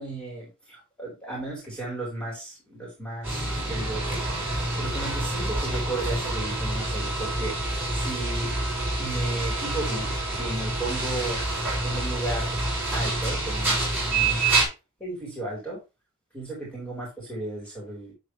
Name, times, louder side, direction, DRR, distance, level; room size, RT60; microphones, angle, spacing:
voice 1, 0.0-4.2 4.8-7.5 7.9-8.5 9.0-11.4 11.8-12.6 12.9-14.4 15.0-15.8 16.3-18.1, right 2 dB, 5° left, -4 dB, 4.1 m, -34 dB
sound 1, 3.2-14.7, right 2 dB, 10° right, 5.3 m, -27 dB
11.5 x 4.3 x 3.2 m, 0.26 s
head